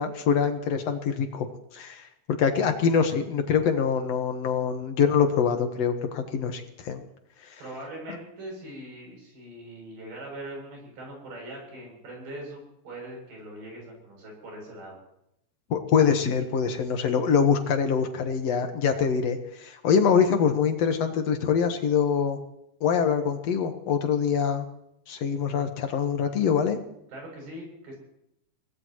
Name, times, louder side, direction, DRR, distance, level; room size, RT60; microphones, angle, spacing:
voice 1, 0.0-1.5 1.7-2.1 2.4-7.0 15.7-22.4 22.8-24.7 25.1-26.8, left 6 dB, 60° left, 6 dB, 1.9 m, -24 dB
voice 2, 7.6-15.0 27.1-28.0, right 1 dB, 75° right, 0 dB, 9.6 m, -41 dB
25.5 x 18.0 x 3.1 m, 0.79 s
omnidirectional pair, 4.5 m